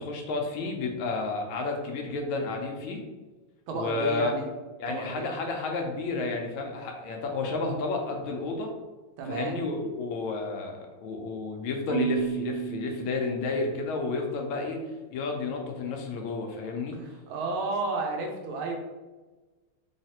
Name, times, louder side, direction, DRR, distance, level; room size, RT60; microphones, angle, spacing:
voice 1, 0.0-3.0 3.7-4.3 4.8-8.7 9.3-14.8 15.1-17.0, left 3 dB, 90° left, 2 dB, 1.5 m, -31 dB
voice 2, 3.7-4.5 4.9-5.3 9.2-9.6 17.0-18.8, right 3 dB, 85° right, 2 dB, 1.6 m, -32 dB
Marimba xylophone / Wood, 11.9-14.1, right 14 dB, 70° right, 1.3 m, -33 dB
3.9 x 3.3 x 2.8 m, 1.2 s
omnidirectional pair, 2.2 m